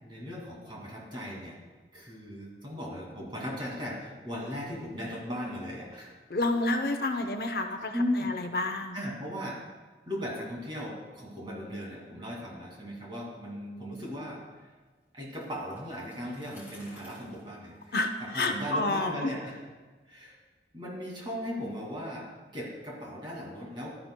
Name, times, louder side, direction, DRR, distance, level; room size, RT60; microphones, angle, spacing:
voice 1, 0.0-1.6 1.9-6.1 7.9-8.3 8.9-9.6 10.1-14.7 15.1-18.0 18.3-19.6 20.1-20.4 20.7-22.3 22.5-24.0, equal, 25° right, -3 dB, 2.3 m, -37 dB
voice 2, 6.3-9.0 17.9-19.3, left 2 dB, 60° left, 6 dB, 0.7 m, -29 dB
Bicycle, 15.3-19.1, left 1 dB, 10° right, 2.5 m, -55 dB
12.0 x 10.5 x 2.2 m, 1.3 s
head